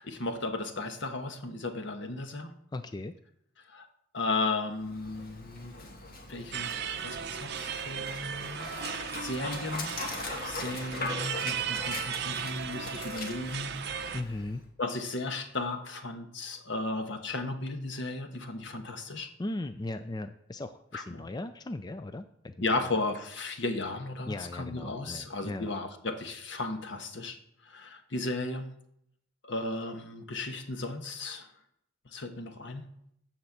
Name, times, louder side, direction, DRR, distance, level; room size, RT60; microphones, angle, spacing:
voice 1, 0.0-2.5 3.7-3.9 4.1-5.9 6.3-8.8 9.1-13.8 14.8-19.3 20.9-21.3 22.6-28.7 29.4-31.5 32.0-32.9, left 2 dB, 65° left, 7 dB, 1.3 m, -35 dB
voice 2, 2.7-3.1 14.1-14.6 19.4-22.6 24.3-25.7, left 2 dB, 20° left, 10 dB, 0.4 m, -37 dB
Dog, 4.7-14.7, left 3 dB, 50° left, 1.8 m, -41 dB
sound 1, 6.5-14.2, right 8 dB, 60° right, 0.7 m, -36 dB
13.0 x 4.4 x 8.0 m, 0.75 s
head